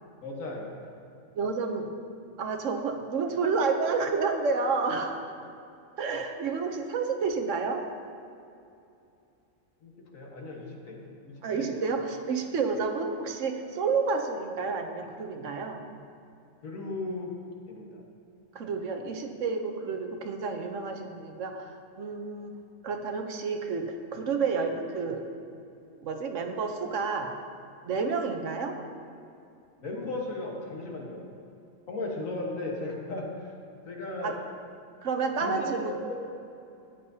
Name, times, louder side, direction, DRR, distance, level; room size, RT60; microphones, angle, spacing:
voice 1, 0.2-1.0 9.8-11.0 11.2-11.9 16.6-17.3 17.7-18.0 29.8-31.2 31.9-33.5 33.9-34.4 35.4-35.7 36.0-36.2, left 2 dB, 80° left, -1 dB, 1.8 m, -36 dB
voice 2, 1.4-1.9 2.4-5.3 6.0-7.8 11.4-15.8 18.5-22.5 22.8-25.3 26.0-27.3 27.8-28.8 34.2-34.3 35.0-35.9, right 4 dB, 70° right, 4 dB, 1.1 m, -30 dB
13.0 x 9.3 x 2.8 m, 2.6 s
omnidirectional pair, 1.4 m